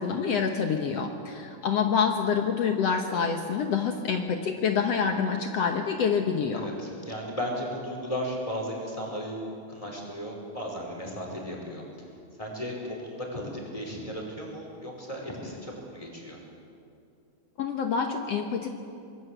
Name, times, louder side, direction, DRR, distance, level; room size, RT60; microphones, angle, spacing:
voice 1, 0.0-6.7 17.6-18.7, left 6 dB, 60° left, 5 dB, 2.0 m, -27 dB
voice 2, 6.5-11.8 12.4-16.4, equal, 10° left, -1 dB, 5.2 m, -35 dB
25.0 x 22.0 x 8.1 m, 2.5 s
omnidirectional pair, 3.6 m